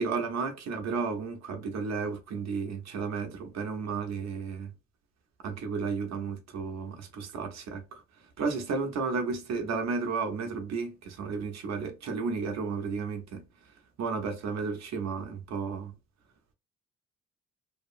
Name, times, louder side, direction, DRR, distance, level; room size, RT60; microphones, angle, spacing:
voice 1, 0.0-4.7 5.4-15.9, right 4 dB, 60° right, 0.7 m, -33 dB
2.8 x 2.3 x 2.4 m
cardioid pair, 90°, 30 cm